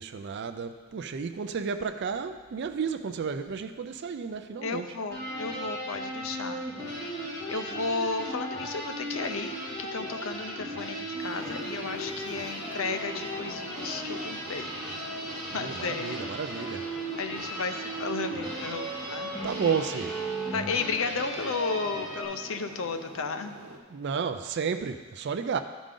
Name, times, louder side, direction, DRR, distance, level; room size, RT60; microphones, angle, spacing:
voice 1, 0.0-4.9 15.5-16.8 19.4-20.2 23.9-25.6, right 6 dB, 50° right, 9 dB, 0.4 m, -32 dB
voice 2, 4.6-9.5 9.8-14.7 15.4-16.2 17.2-19.3 20.5-23.6, left 4 dB, 65° left, 8 dB, 0.5 m, -34 dB
sound 1, 5.1-22.3, right 1 dB, 10° left, 2.7 m, -36 dB
sound 2, 11.2-23.8, right 2 dB, 80° right, 1.0 m, -46 dB
12.5 x 5.1 x 3.8 m, 1.4 s
head